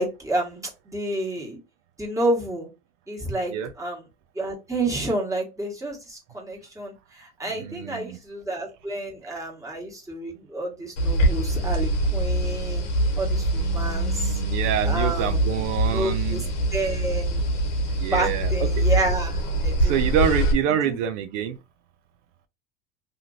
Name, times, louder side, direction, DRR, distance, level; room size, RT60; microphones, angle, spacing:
voice 1, 0.0-1.6 2.0-2.7 3.1-4.0 4.3-12.9 13.2-14.4 14.8-15.5 15.9-16.4 16.7-17.4 18.1-20.0 20.8-21.0, right 1 dB, 10° right, 1.3 m, -29 dB
voice 2, 7.5-8.2 13.5-16.5 18.0-18.8 19.8-21.6, right 8 dB, 75° right, 0.5 m, -27 dB
sound 1, 11.0-20.5, right 1 dB, 90° left, 1.0 m, -24 dB
2.8 x 2.6 x 2.5 m
supercardioid pair, 100°, 36 cm